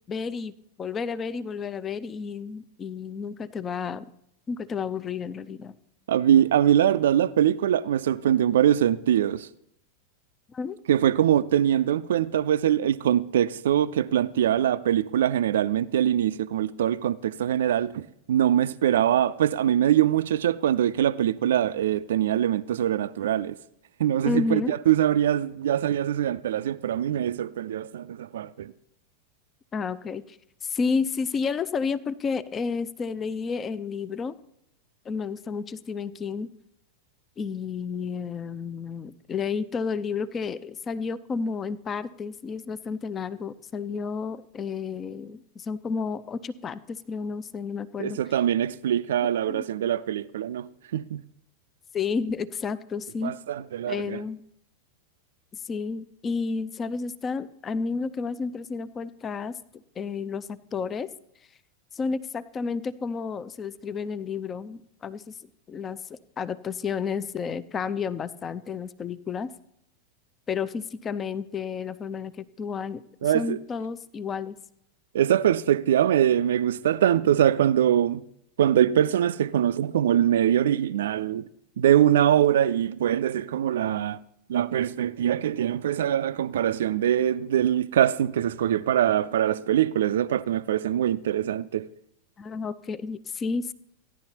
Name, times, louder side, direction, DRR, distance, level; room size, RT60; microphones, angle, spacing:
voice 1, 0.1-0.5 0.8-4.1 4.5-5.8 10.5-10.8 24.2-24.8 29.7-34.4 35.1-36.5 37.4-48.2 49.2-49.6 51.9-53.3 53.9-54.4 55.5-59.6 60.0-61.1 61.9-65.3 65.7-69.5 70.5-74.6 92.4-93.7, left 5 dB, 20° left, 0.4 m, -31 dB
voice 2, 6.1-9.5 10.9-23.6 24.0-28.7 48.0-51.2 53.2-54.2 73.2-73.6 75.1-78.2 78.6-81.5 81.8-84.2 84.5-91.9, right 10 dB, 60° right, 0.3 m, -23 dB
16.0 x 10.5 x 2.9 m
figure-of-eight pair, 90°, 0 cm